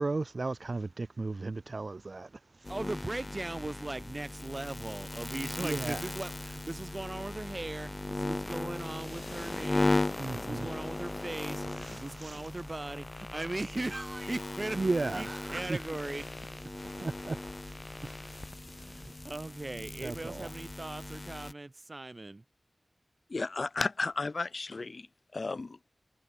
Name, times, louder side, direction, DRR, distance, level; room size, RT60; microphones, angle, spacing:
voice 1, 0.0-2.3 5.6-6.0 10.2-10.7 11.8-12.4 14.7-15.8 17.0-17.4 18.0-18.4 20.0-20.5, right 3 dB, 60° right, 3.4 m, -35 dB
sound 1, 2.6-21.5, left 2 dB, 35° left, 4.2 m, -37 dB
voice 2, 2.7-10.1 10.3-16.2 18.7-22.4, right 2 dB, 40° right, 4.8 m, -39 dB
voice 3, 23.3-25.1 25.3-25.8, left 3 dB, 65° left, 1.6 m, -33 dB
wide cardioid pair, 55°, 0 cm